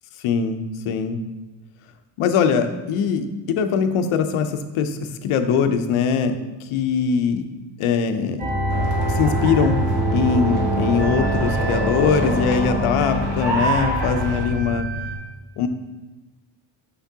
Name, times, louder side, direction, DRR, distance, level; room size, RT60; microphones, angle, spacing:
voice 1, 0.2-1.2 2.2-7.5 7.8-8.5 9.1-9.8 10.1-14.9 15.6-15.7, left 6 dB, 80° left, 8 dB, 0.7 m, -22 dB
sound 1, 8.4-15.2, right 1 dB, 20° right, 1.1 m, -24 dB
sound 2, 8.7-14.4, right 2 dB, 50° right, 1.3 m, -28 dB
6.2 x 5.9 x 2.8 m, 1.2 s
cardioid pair, 155°, 49 cm